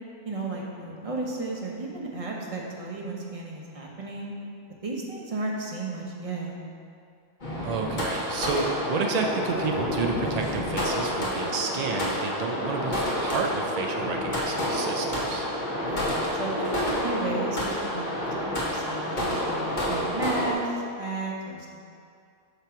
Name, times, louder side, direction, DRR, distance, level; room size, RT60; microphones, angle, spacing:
voice 1, 0.2-4.3 4.8-6.5 15.8-18.1 18.4-21.7, right 2 dB, 35° right, -2 dB, 0.9 m, -33 dB
sound 1, 7.4-20.5, left 1 dB, 45° left, 1.2 m, -29 dB
voice 2, 7.6-15.4, right 4 dB, 75° right, 2 dB, 0.3 m, -30 dB
8.1 x 3.0 x 5.8 m, 2.4 s
omnidirectional pair, 1.2 m